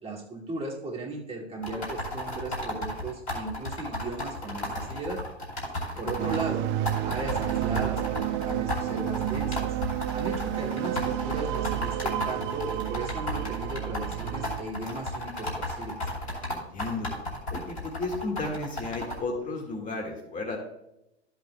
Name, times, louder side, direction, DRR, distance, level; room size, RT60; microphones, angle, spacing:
voice 1, 0.0-5.2 6.0-6.7 7.0-9.8 10.1-16.1, right 2 dB, 20° right, -2 dB, 2.3 m, -36 dB
typing on a braille'n speak, 1.6-6.4 6.9-19.2, left 1 dB, 75° left, 3.1 m, -34 dB
voice 2, 5.7-6.1 16.4-17.1 17.5-20.6, left 3 dB, 25° left, 2 dB, 1.8 m, -34 dB
sound 1, 6.2-14.6, right 13 dB, 35° right, 0.5 m, -30 dB
13.5 x 8.0 x 2.2 m, 0.83 s
figure-of-eight pair, 90°, 33 cm